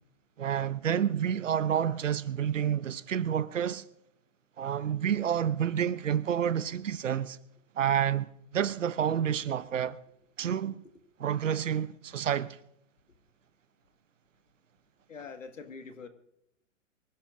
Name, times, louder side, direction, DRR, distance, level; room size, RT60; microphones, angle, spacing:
voice 1, 0.4-3.9 4.6-7.4 7.8-10.0 10.4-10.8 11.2-12.6, right 9 dB, 70° right, 0.9 m, -29 dB
voice 2, 15.1-16.1, left 5 dB, 75° left, 1.9 m, -44 dB
24.0 x 16.0 x 2.6 m
figure-of-eight pair, 115°, 39 cm